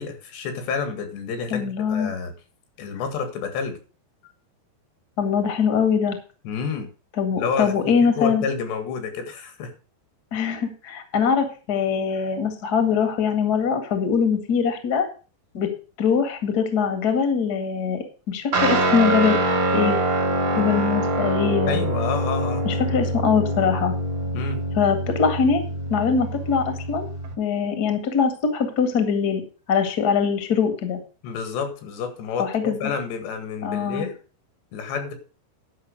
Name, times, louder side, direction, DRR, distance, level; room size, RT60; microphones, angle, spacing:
voice 1, 0.0-2.3 2.8-3.8 6.5-6.9 7.4-9.7 21.7-22.6 24.3-24.6 31.2-34.1 34.7-35.1, left 5 dB, 80° left, 8 dB, 3.9 m, -29 dB
voice 2, 1.5-2.1 5.2-6.2 7.2-8.4 10.3-15.1 15.5-15.7 16.0-19.4 19.7-20.0 20.5-21.9 22.6-23.9 24.8-25.6 25.9-27.1 27.4-29.4 29.7-31.0 32.4-32.8 33.6-34.1, left 6 dB, 40° left, 7 dB, 1.4 m, -22 dB
Guitar, 18.5-27.3, right 1 dB, 40° right, 1.8 m, -24 dB
11.0 x 6.0 x 6.6 m, 0.36 s
omnidirectional pair, 4.9 m